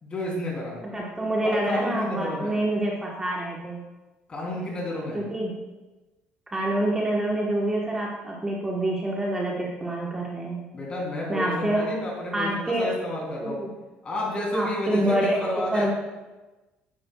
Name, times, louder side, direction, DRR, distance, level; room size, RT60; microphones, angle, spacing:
voice 1, 0.0-0.8 1.4-2.5 4.3-5.2 10.7-13.6 14.0-15.9, left 1 dB, 30° left, -2 dB, 2.9 m, -31 dB
voice 2, 0.9-3.8 5.1-5.5 6.5-10.6 11.3-11.9 12.3-12.9 13.4-13.7 14.5-15.9, right 1 dB, 15° right, -3 dB, 1.1 m, -26 dB
9.9 x 8.6 x 2.3 m, 1.1 s
cardioid pair, 125°, 4 cm